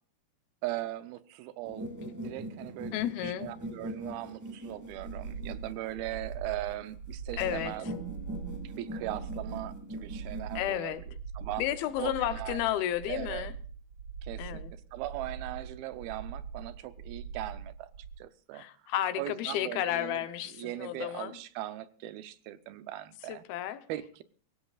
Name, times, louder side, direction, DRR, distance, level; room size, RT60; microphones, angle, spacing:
voice 1, 0.6-1.9 2.2-2.9 3.2-7.9 8.6-11.0 11.4-11.6 12.0-12.6 13.1-13.5 14.2-17.9 18.2-18.6 19.2-23.5 23.9-24.2, right 15 dB, 85° right, 2.6 m, -39 dB
sound 1, 1.6-6.1 7.4-10.6, right 1 dB, 10° right, 0.8 m, -41 dB
voice 2, 2.9-3.5 7.4-7.7 10.6-11.0 11.6-13.5 14.4-14.7 18.5-21.4 23.3-23.8, left 12 dB, 90° left, 2.8 m, -32 dB
sound 2, 4.7-18.1, right 6 dB, 50° right, 2.6 m, -42 dB
23.5 x 16.0 x 2.4 m
omnidirectional pair, 4.2 m